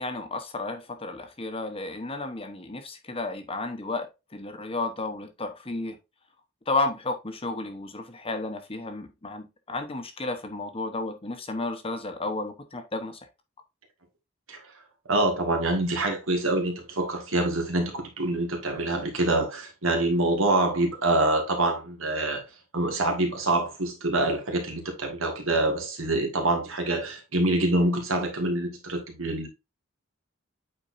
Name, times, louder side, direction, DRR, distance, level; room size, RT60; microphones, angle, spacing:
voice 1, 0.0-6.0 6.7-13.2, left 2 dB, 25° left, 0.9 m, -32 dB
voice 2, 15.1-22.4 22.7-29.5, right 2 dB, 75° right, 1.8 m, -26 dB
8.5 x 4.4 x 2.6 m
head